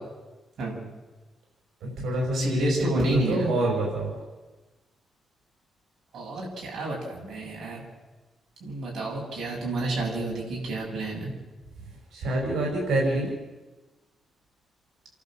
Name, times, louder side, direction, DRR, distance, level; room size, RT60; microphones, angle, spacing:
voice 1, 1.8-4.1 12.1-13.3, right 1 dB, 85° right, -2 dB, 5.7 m, -26 dB
voice 2, 2.3-3.5 6.1-7.8 8.6-11.3, right 2 dB, 60° right, -2 dB, 7.6 m, -30 dB
28.5 x 12.0 x 7.6 m, 1.2 s
wide cardioid pair, 165°, 0 cm